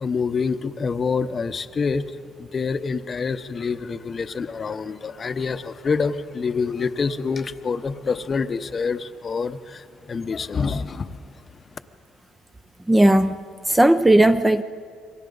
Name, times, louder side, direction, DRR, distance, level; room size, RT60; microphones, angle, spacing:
voice 1, 0.0-2.1 2.4-11.2, left 5 dB, 35° left, 0.8 m, -26 dB
voice 2, 12.9-13.4 13.7-14.6, right 1 dB, 10° right, 0.5 m, -16 dB
29.0 x 23.5 x 4.0 m
cardioid pair, 115°, 0 cm